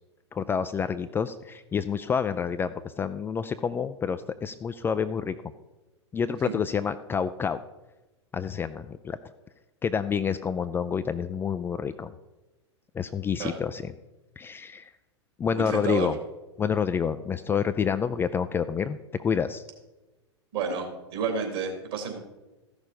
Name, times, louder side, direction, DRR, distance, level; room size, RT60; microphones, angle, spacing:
voice 1, 0.3-5.4 6.1-7.6 8.3-9.2 9.8-12.1 12.9-13.9 14.4-14.9 15.4-16.2 16.6-19.6, left 7 dB, 15° left, 10 dB, 0.3 m, -28 dB
voice 2, 15.5-16.1 20.5-22.2, right 5 dB, 55° right, 3 dB, 3.2 m, -30 dB
14.0 x 6.4 x 5.2 m, 1.1 s
figure-of-eight pair, 95°, 15 cm